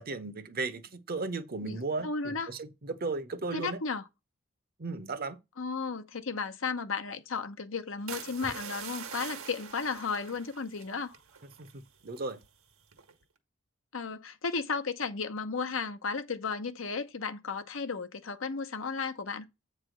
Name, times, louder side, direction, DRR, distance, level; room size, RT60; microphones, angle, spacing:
voice 1, 0.0-3.8 4.8-5.4 11.6-12.4, right 3 dB, 45° right, 0.8 m, -36 dB
voice 2, 1.6-2.5 3.5-4.0 5.6-11.2 13.9-19.5, left 4 dB, 65° left, 0.8 m, -34 dB
sound 1, 8.1-11.8 12.1-12.5 12.9-13.2, right 6 dB, 80° right, 1.5 m, -44 dB
8.4 x 3.3 x 6.4 m
head